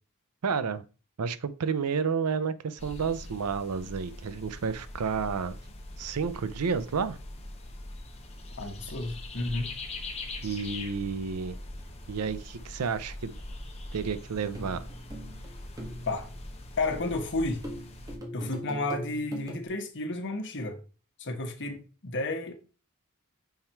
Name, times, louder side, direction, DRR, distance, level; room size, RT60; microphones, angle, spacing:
voice 1, 0.4-0.8 1.2-5.6 6.0-7.2 10.4-11.6 12.1-13.4 13.9-14.9, right 5 dB, 85° right, 0.5 m, -31 dB
sound 1, 2.8-18.2, left 2 dB, 30° left, 1.1 m, -42 dB
voice 2, 8.6-9.7 16.0-16.3 16.8-17.6 18.3-20.8 21.2-22.5, left 2 dB, 55° left, 1.2 m, -32 dB
sound 2, 14.5-16.9 17.6-19.7, equal, 15° right, 1.5 m, -41 dB
5.7 x 4.4 x 4.4 m
head